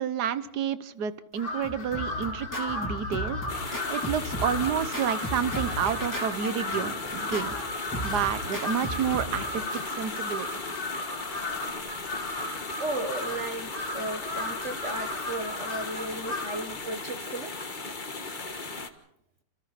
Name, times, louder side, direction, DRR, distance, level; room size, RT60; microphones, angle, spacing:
voice 1, 0.0-3.4 3.9-7.5 8.0-10.5, right 8 dB, 65° right, 13 dB, 1.5 m, -30 dB
Crow, 1.4-16.7, left 2 dB, 65° left, 3.6 m, -35 dB
Scratching (performance technique), 1.4-9.8, equal, 10° left, 2.7 m, -36 dB
sound 1, 3.5-18.9, left 3 dB, 30° left, 1.5 m, -37 dB
voice 2, 12.8-17.5, right 2 dB, 45° right, 6 dB, 1.6 m, -35 dB
29.0 x 27.0 x 4.2 m, 0.75 s
omnidirectional pair, 1.9 m